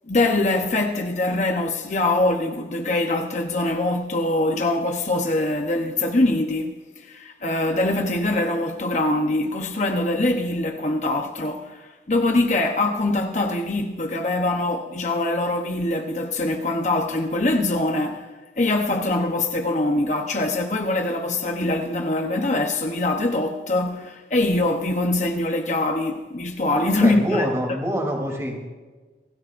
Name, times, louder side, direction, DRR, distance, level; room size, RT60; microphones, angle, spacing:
voice 1, 0.1-18.3 18.6-27.5, left 2 dB, 40° left, 0.9 m, -23 dB
voice 2, 26.7-28.7, equal, 20° right, 3.2 m, -26 dB
27.0 x 17.0 x 2.6 m
head